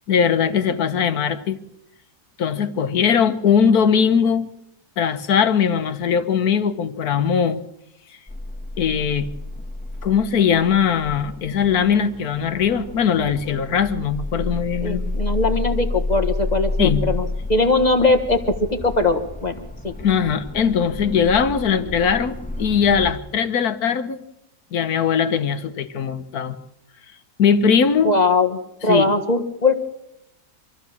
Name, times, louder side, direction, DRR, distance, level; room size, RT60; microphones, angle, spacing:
voice 1, 0.1-1.6 2.4-4.5 5.0-7.6 8.8-9.3 10.0-15.1 16.8-17.0 20.0-24.2 24.7-26.6 27.4-28.2 28.9-29.1, left 7 dB, 70° left, 1.6 m, -20 dB
sound 1, 8.3-23.1, left 2 dB, 5° left, 1.2 m, -30 dB
voice 2, 14.8-19.9 28.0-29.8, left 2 dB, 25° left, 1.5 m, -20 dB
25.0 x 14.5 x 7.2 m
omnidirectional pair, 1.7 m